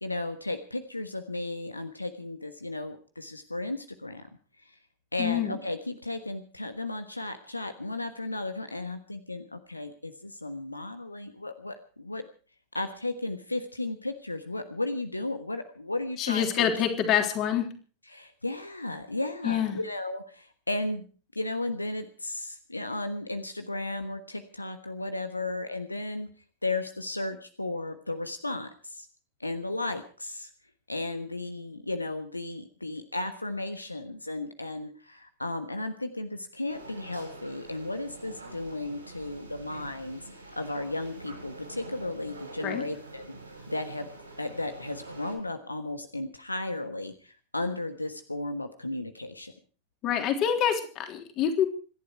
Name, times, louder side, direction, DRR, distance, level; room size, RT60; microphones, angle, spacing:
voice 1, 0.0-4.2 4.6-4.7 5.1-12.2 12.7-16.7 18.1-21.0 21.3-26.3 26.6-29.1 29.4-30.5 30.9-40.2 40.6-43.3 43.7-44.1 44.4-49.5, left 2 dB, 85° left, 9 dB, 1.3 m, -34 dB
voice 2, 5.2-5.6 16.2-17.7 19.4-19.8 42.6-42.8 50.0-51.7, left 9 dB, 35° left, 5 dB, 3.5 m, -26 dB
sound 1, 36.7-45.4, right 2 dB, 80° right, 7.0 m, -45 dB
26.5 x 11.5 x 4.6 m, 0.40 s
figure-of-eight pair, 90°, 0 cm